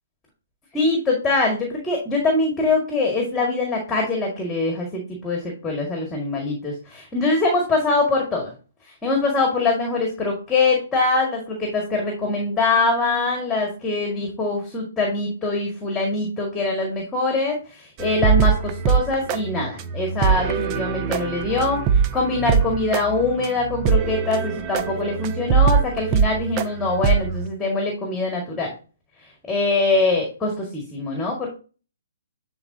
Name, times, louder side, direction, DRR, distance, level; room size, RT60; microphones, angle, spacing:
voice 1, 0.7-8.5 9.0-28.7 29.5-31.5, left 3 dB, 10° left, 0 dB, 2.0 m, -23 dB
sound 1, 18.0-27.5, right 6 dB, 30° right, 0.7 m, -22 dB
10.0 x 3.9 x 2.8 m, 0.35 s
figure-of-eight pair, 130°, 0 cm